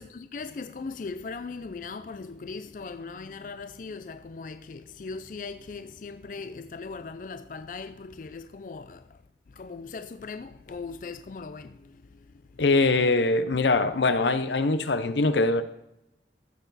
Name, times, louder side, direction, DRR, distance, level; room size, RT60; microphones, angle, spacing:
voice 1, 0.0-9.2 9.5-12.6 13.5-13.7, left 4 dB, 50° left, 0.4 m, -39 dB
voice 2, 12.6-15.6, left 3 dB, 85° left, 0.7 m, -22 dB
15.0 x 6.9 x 4.1 m
head